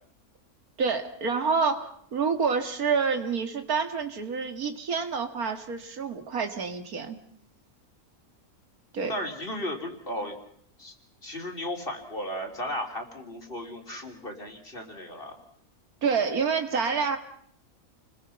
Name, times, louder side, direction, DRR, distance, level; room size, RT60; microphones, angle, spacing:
voice 1, 0.8-7.2 8.9-9.1 16.0-17.2, right 5 dB, 90° right, 7 dB, 2.5 m, -28 dB
voice 2, 9.1-10.4 10.8-10.9 11.2-15.4, left 1 dB, 40° left, 3 dB, 3.6 m, -35 dB
29.5 x 21.5 x 5.8 m, 0.67 s
omnidirectional pair, 1.5 m